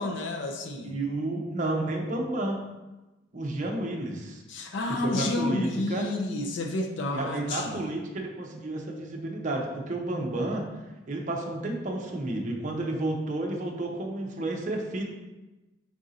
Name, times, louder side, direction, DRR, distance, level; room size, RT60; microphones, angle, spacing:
voice 1, 0.0-1.0 4.5-7.8, left 2 dB, 60° left, 3 dB, 0.4 m, -30 dB
voice 2, 0.8-2.6 3.3-4.4 4.9-6.0 7.1-10.7 11.1-15.1, right 2 dB, 35° right, 1 dB, 0.6 m, -31 dB
4.7 x 2.6 x 3.9 m, 1.1 s
head